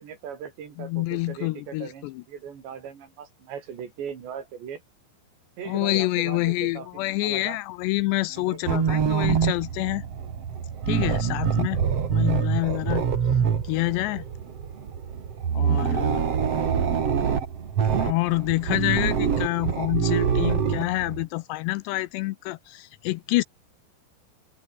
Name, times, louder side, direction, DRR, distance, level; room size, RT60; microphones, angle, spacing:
voice 1, 0.0-4.8 5.6-7.6 8.3-9.0 15.8-16.6, right 7 dB, 70° right, 5.9 m, -39 dB
voice 2, 0.8-2.2 5.7-10.0 10.9-11.8 12.1-13.0 13.6-14.2 15.5-16.3 18.0-23.4, left 19 dB, 80° left, 2.6 m, -27 dB
sound 1, 8.7-21.2, right 7 dB, 40° right, 2.6 m, -25 dB
open air
omnidirectional pair, 5.3 m